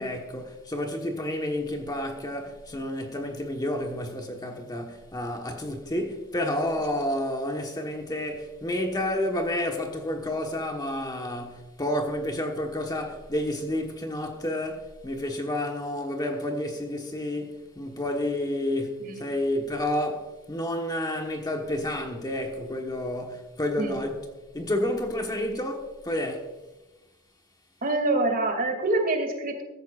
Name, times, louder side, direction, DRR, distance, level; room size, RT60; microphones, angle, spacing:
voice 1, 0.0-24.2 24.5-26.5, left 1 dB, 20° left, 1.3 m, -30 dB
voice 2, 27.8-29.6, right 2 dB, 45° right, 2.5 m, -25 dB
15.0 x 15.0 x 2.5 m
head